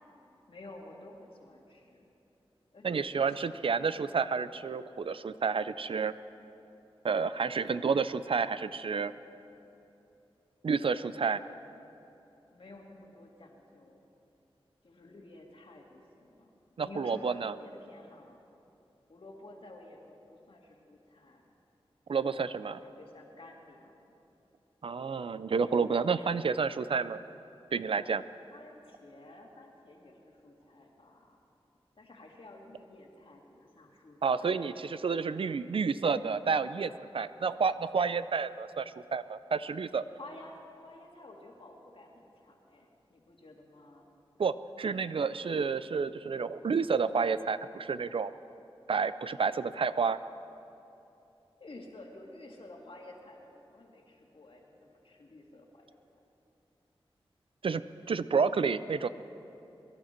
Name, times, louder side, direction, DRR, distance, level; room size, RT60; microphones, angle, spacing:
voice 1, 0.5-2.1 2.7-4.0 12.5-14.0 14.8-18.4 19.1-21.4 22.1-24.2 25.9-26.5 28.5-31.4 32.0-34.7 40.1-44.1 51.6-55.9, left 2 dB, 65° left, 0 dB, 2.1 m, -52 dB
voice 2, 2.8-6.1 7.0-9.1 10.6-11.4 16.8-17.6 22.1-22.8 24.8-27.2 27.7-28.2 34.2-40.0 44.4-48.3 48.9-50.2 57.6-57.8 58.1-59.1, right 5 dB, 65° right, 14 dB, 0.4 m, -30 dB
23.0 x 11.5 x 4.4 m, 2.9 s
wide cardioid pair, 60°, 10 cm